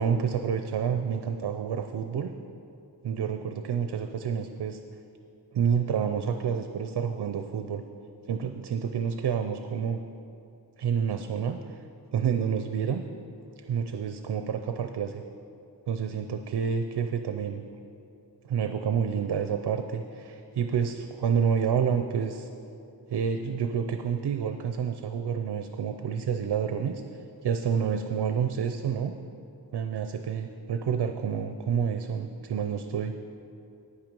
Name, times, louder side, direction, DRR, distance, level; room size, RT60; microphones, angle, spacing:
voice 1, 0.0-2.3 3.0-4.8 5.5-7.8 8.3-10.0 10.8-11.8 12.1-13.0 13.6-15.2 15.9-17.6 18.4-22.5 23.1-27.0 27.4-29.1 29.7-33.1, right 7 dB, 75° right, 7 dB, 0.6 m, -29 dB
9.7 x 8.9 x 5.3 m, 2.6 s
wide cardioid pair, 115°, 40 cm